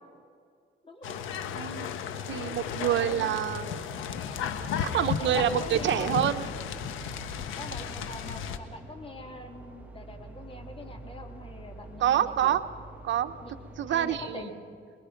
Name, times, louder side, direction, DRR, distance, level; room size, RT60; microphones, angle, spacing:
voice 1, 0.8-1.2 2.9-3.4 5.2-6.2 7.6-12.6 13.4-13.5 13.9-14.5, left 2 dB, 30° left, 3 dB, 3.6 m, -43 dB
sound 1, 1.0-8.6, left 8 dB, 90° left, 1.4 m, -34 dB
voice 2, 1.5-1.9 2.3-3.8 4.8-6.4 12.0-12.6 13.0-13.3 13.8-14.5, right 11 dB, 70° right, 9 dB, 1.0 m, -27 dB
sound 2, 2.5-14.3, right 2 dB, 10° right, 2.0 m, -47 dB
29.0 x 21.0 x 5.3 m, 2.2 s
cardioid pair, 90°, 20 cm